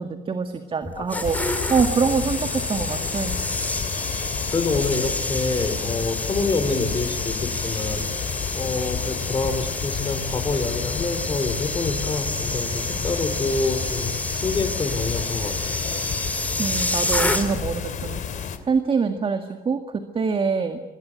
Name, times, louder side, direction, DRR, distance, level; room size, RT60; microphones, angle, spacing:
voice 1, 0.0-1.4 1.7-3.3 16.6-20.8, right 5 dB, 30° right, 7 dB, 1.9 m, -25 dB
sound 1, 0.8-17.8 18.1-18.3, left 2 dB, 10° left, 3.9 m, -29 dB
voice 2, 0.9-1.3 4.5-8.1 8.5-15.8, left 3 dB, 25° left, 7 dB, 4.8 m, -27 dB
sound 2, 1.2-18.6, left 7 dB, 50° left, 2.7 m, -31 dB
26.0 x 22.5 x 8.4 m, 1.0 s
cardioid pair, 110°, 17 cm